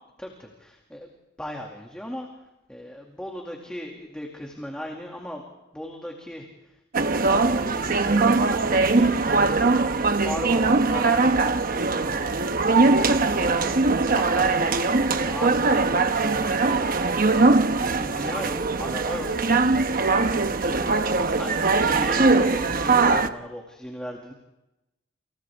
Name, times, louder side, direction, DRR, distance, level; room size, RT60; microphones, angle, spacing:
voice 1, 0.2-2.3 2.7-5.4 5.7-6.7 7.5-17.1 17.3-19.3 20.7-20.9 21.2-24.3, equal, 5° left, 0 dB, 2.4 m, -38 dB
sound 1, 6.9-23.3, right 3 dB, 50° right, 1.0 m, -21 dB
29.5 x 28.0 x 3.6 m, 0.96 s
head